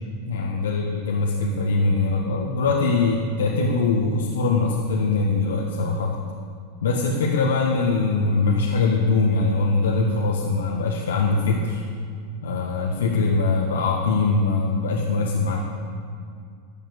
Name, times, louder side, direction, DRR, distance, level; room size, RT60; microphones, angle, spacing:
voice 1, 0.3-6.2 6.8-11.8 12.4-15.6, left 3 dB, 80° left, -1 dB, 1.4 m, -22 dB
12.5 x 7.3 x 8.2 m, 2.2 s
hypercardioid pair, 100°, 0 cm